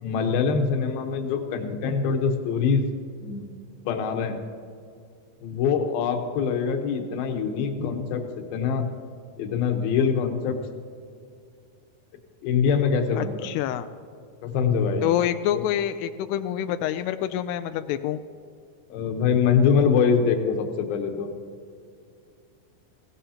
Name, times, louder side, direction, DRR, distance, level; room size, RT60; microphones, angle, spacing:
voice 1, 0.0-2.8 3.2-3.5 3.9-4.4 5.4-8.9 9.4-10.6 12.4-13.5 14.4-15.1 15.5-15.6 18.9-21.3, left 6 dB, 75° left, 5 dB, 2.9 m, -24 dB
voice 2, 13.2-13.9 15.0-18.2, left 11 dB, 90° left, 9 dB, 2.6 m, -27 dB
20.5 x 16.5 x 2.9 m, 2.3 s
omnidirectional pair, 4.6 m